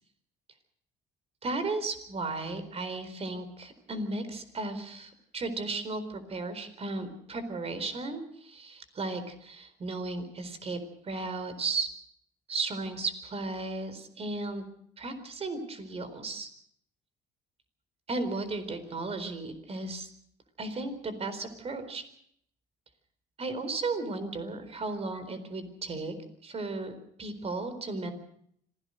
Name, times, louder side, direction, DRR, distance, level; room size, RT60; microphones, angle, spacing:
voice 1, 1.4-10.8 11.0-11.9 12.5-14.7 15.0-16.5 18.1-20.1 20.6-22.0 23.4-26.1 26.4-26.9 27.2-28.1, right 3 dB, 35° right, 11 dB, 4.3 m, -35 dB
26.0 x 17.0 x 6.5 m, 0.67 s
cardioid pair, 110°, 17 cm